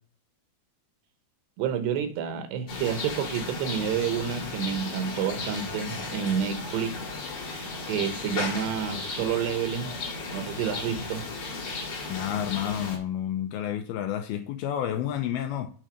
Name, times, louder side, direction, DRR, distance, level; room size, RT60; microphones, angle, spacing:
voice 1, 1.6-7.0 7.4-9.9 10.3-11.3, right 8 dB, 80° right, 3.1 m, -29 dB
sound 1, 2.7-13.0, left 3 dB, 45° left, 2.8 m, -35 dB
voice 2, 12.1-15.7, left 10 dB, 80° left, 2.3 m, -30 dB
9.0 x 3.8 x 5.1 m
omnidirectional pair, 4.9 m